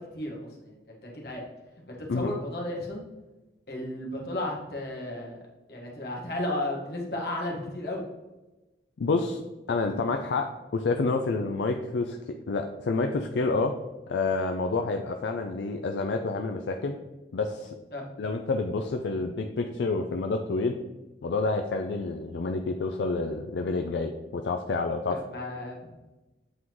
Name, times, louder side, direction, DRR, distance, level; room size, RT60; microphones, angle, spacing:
voice 1, 0.0-1.4 1.9-3.0 3.7-5.4 5.7-8.0 17.9-18.1 25.1-25.9, left 1 dB, 65° left, -2 dB, 1.5 m, -34 dB
voice 2, 9.0-9.4 9.7-12.2 12.5-13.8 14.1-17.0 17.3-17.8 18.2-20.8 21.2-25.2, left 3 dB, 85° left, 4 dB, 0.4 m, -28 dB
8.2 x 3.7 x 3.0 m, 1.1 s
head